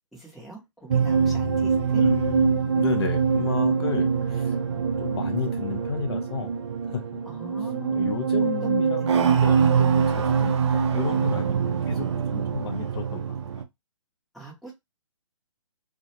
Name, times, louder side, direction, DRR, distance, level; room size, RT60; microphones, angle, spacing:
voice 1, 0.1-2.0 7.3-8.0 8.6-8.7 9.0-9.1 14.3-14.7, right 3 dB, ahead, 0.7 m, -42 dB
sound 1, 0.9-13.6, right 6 dB, 55° right, 0.4 m, -24 dB
voice 2, 1.9-4.6 5.0-6.5 6.9-7.0 7.9-9.2 9.4-12.1 12.3-13.2, left 7 dB, 50° left, 0.5 m, -32 dB
2.3 x 2.1 x 2.8 m
figure-of-eight pair, 135°, 17 cm